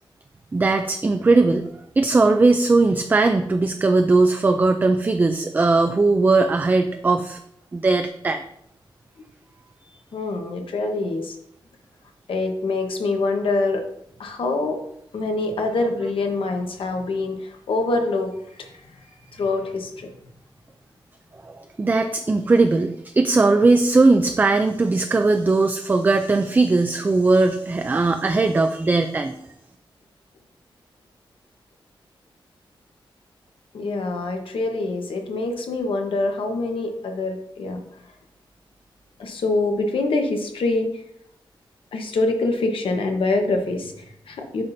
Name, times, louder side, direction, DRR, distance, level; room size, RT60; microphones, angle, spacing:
voice 1, 0.5-1.7 2.0-7.4 7.7-8.4 21.5-29.4, right 3 dB, 20° right, 6 dB, 0.3 m, -19 dB
voice 2, 10.1-11.4 12.3-13.8 14.2-14.8 15.1-18.7 19.3-20.1 33.7-37.8 39.2-41.0 41.9-44.6, left 2 dB, 80° left, 4 dB, 1.1 m, -25 dB
8.7 x 5.7 x 2.7 m, 0.73 s
wide cardioid pair, 170°, 9 cm